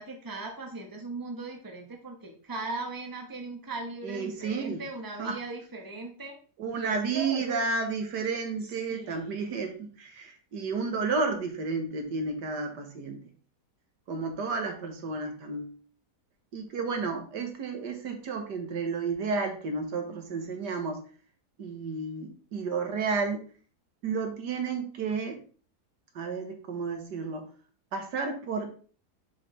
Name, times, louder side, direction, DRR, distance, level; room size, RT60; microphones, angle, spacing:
voice 1, 0.0-6.4 6.7-7.6 8.6-9.3, right 3 dB, 15° right, 2 dB, 1.1 m, -38 dB
voice 2, 4.0-4.8 5.2-5.4 6.6-13.2 14.1-15.7 16.5-21.0 21.6-23.4 24.0-25.4 26.2-27.5 27.9-28.7, right 4 dB, 85° right, 4 dB, 1.9 m, -32 dB
6.6 x 6.5 x 3.2 m, 0.40 s
omnidirectional pair, 1.8 m